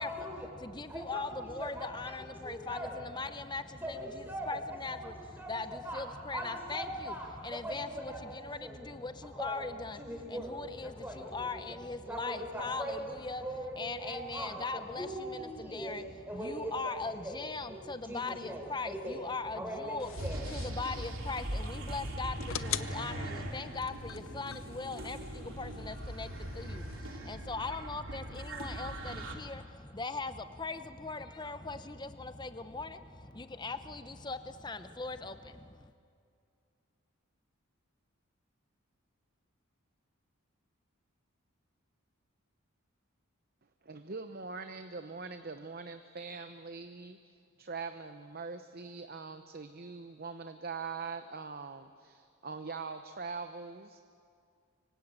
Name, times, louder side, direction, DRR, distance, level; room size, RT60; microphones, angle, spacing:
voice 1, 0.0-0.5 0.9-3.0 3.8-6.0 6.3-8.3 8.6-9.0 9.3-9.6 10.0-11.8 12.1-13.1 13.4-16.0 16.3-17.4 17.7-19.2 19.5-20.5, right 1 dB, 10° right, 1 dB, 4.4 m, -41 dB
voice 2, 0.5-13.4 13.8-16.1 16.3-20.1 20.5-35.9, left 3 dB, 20° left, 10 dB, 0.8 m, -40 dB
sound 1, 20.0-27.0, left 9 dB, 70° left, 0.7 m, -44 dB
sound 2, 20.2-29.3, right 1 dB, 65° right, 3.1 m, -40 dB
voice 3, 43.8-54.0, right 4 dB, 45° right, 8 dB, 0.8 m, -42 dB
25.5 x 24.0 x 8.9 m, 2.3 s
head